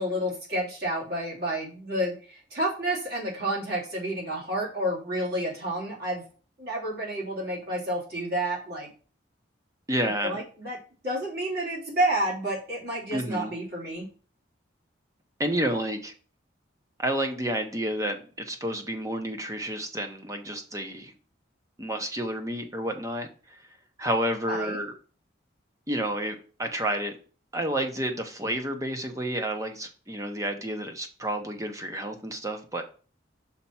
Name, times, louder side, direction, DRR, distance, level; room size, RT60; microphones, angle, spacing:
voice 1, 0.0-6.2 6.6-8.9 10.2-10.8 11.0-14.1 24.4-24.8, right 1 dB, 55° right, -4 dB, 2.9 m, -30 dB
voice 2, 9.9-10.4 13.1-13.5 15.4-16.1 17.0-21.1 21.8-23.6 24.0-24.9 25.9-27.1 27.5-32.8, right 1 dB, 15° right, 5 dB, 0.9 m, -30 dB
5.8 x 4.5 x 5.8 m, 0.38 s
head